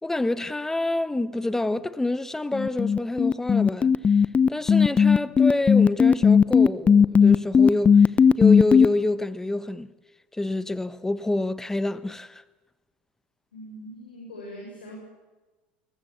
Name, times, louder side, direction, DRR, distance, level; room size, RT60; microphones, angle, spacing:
voice 1, 0.0-9.9 10.3-12.4, left 2 dB, 10° left, 1.1 m, -27 dB
sound 1, 2.5-8.9, left 6 dB, 25° left, 0.8 m, -16 dB
voice 2, 13.5-15.0, equal, 85° left, 7.2 m, -41 dB
22.0 x 19.5 x 8.3 m
hypercardioid pair, 80°, 5 cm